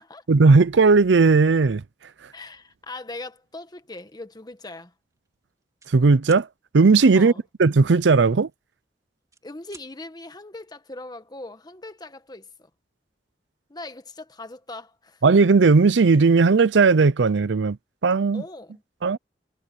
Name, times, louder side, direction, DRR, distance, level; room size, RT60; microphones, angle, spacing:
voice 1, 0.3-1.8 5.9-6.5 6.7-7.3 7.6-8.5 15.2-17.8 18.0-18.4 19.0-19.2, right 4 dB, 85° right, 0.6 m, -16 dB
voice 2, 2.3-4.9 7.1-7.4 9.4-12.7 13.7-15.2 18.3-18.8, left 2 dB, 25° left, 1.4 m, -40 dB
sound 1, 3.9-4.1 4.6-4.8 5.0-5.9 6.2-6.5 8.1-8.8 9.2-9.9, right 5 dB, 20° right, 2.8 m, -50 dB
head